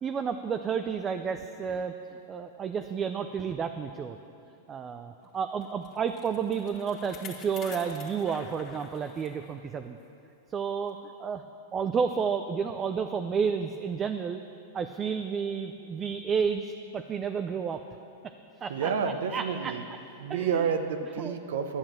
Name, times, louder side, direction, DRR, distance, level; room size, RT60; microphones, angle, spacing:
voice 1, 0.0-2.0 2.3-4.2 4.7-10.0 10.5-11.4 11.7-14.4 14.7-17.8 18.6-18.9 19.3-19.7 20.3-20.6 21.2-21.3, right 6 dB, 25° right, 7 dB, 0.5 m, -31 dB
Bicycle, 5.6-9.5 10.0-10.1 10.9-11.0, left 7 dB, 35° left, 1.7 m, -47 dB
voice 2, 18.7-19.8 20.2-21.8, right 6 dB, 75° right, 8 dB, 1.0 m, -30 dB
11.5 x 8.6 x 7.5 m, 2.9 s
hypercardioid pair, 125°, 0 cm